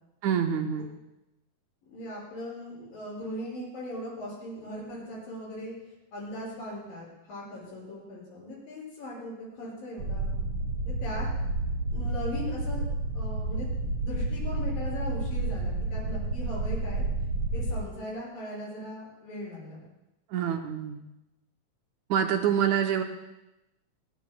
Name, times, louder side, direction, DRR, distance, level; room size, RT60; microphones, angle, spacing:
voice 1, 0.2-0.9 20.3-21.0 22.1-23.0, right 8 dB, 75° right, 5 dB, 1.8 m, -26 dB
voice 2, 1.9-5.7 6.1-10.3 11.0-11.3 11.9-12.8 13.1-13.7 14.0-17.0 17.5-19.9, left 1 dB, 75° left, -5 dB, 7.4 m, -39 dB
sound 1, 10.0-17.7, right 2 dB, 40° right, 2.2 m, -30 dB
29.0 x 12.5 x 2.2 m, 0.94 s
omnidirectional pair, 4.1 m